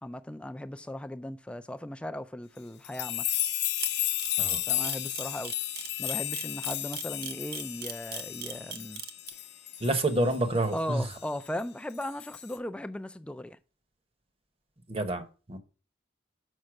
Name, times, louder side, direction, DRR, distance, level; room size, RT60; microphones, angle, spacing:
voice 1, 0.0-3.3 4.7-5.5 6.0-9.0 9.3-9.4 10.7-13.6, left 1 dB, 5° left, 0.4 m, -37 dB
sound 1, 2.8-10.7 11.0-11.2 12.0-12.6, left 13 dB, 60° left, 0.7 m, -33 dB
Camera, 3.8-9.3, right 9 dB, 55° right, 0.8 m, -38 dB
voice 2, 9.8-11.1 14.9-15.6, right 2 dB, 30° right, 1.0 m, -28 dB
6.4 x 5.4 x 5.9 m
head